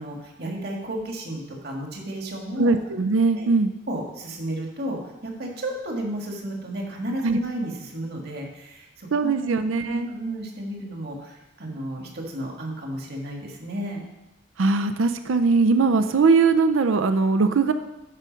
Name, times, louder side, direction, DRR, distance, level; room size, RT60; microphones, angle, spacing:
voice 1, 0.0-2.7 3.3-3.5 3.9-14.0, right 1 dB, 50° right, 1 dB, 1.7 m, -33 dB
voice 2, 2.6-3.7 7.2-7.4 9.1-10.1 14.6-17.7, right 4 dB, 75° right, 9 dB, 0.5 m, -20 dB
11.0 x 5.0 x 5.2 m, 1.0 s
head